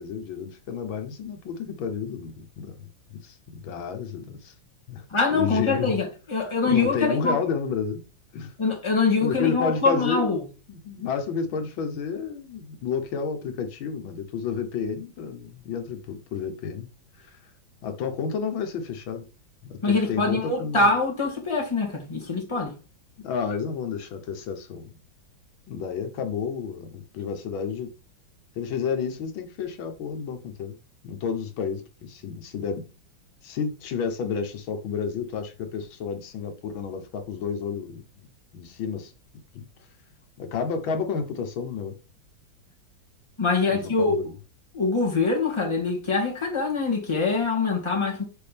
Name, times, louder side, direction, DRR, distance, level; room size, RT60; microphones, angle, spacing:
voice 1, 0.0-4.5 4.9-5.0 5.3-5.9 6.6-8.0 8.3-8.5 9.2-10.4 10.7-16.9 17.2-17.3 17.8-19.3 19.6-20.9 23.2-24.9 25.7-27.9 28.6-30.8 31.0-32.8 33.4-38.3 38.5-39.1 39.5-39.6 40.4-42.0 43.7-44.4, left 6 dB, 85° left, 1.8 m, -31 dB
voice 2, 5.1-7.4 8.6-10.4 19.8-22.7 43.4-44.2 44.7-48.2, left 3 dB, 15° left, 1.9 m, -24 dB
6.8 x 5.0 x 3.4 m
omnidirectional pair, 2.1 m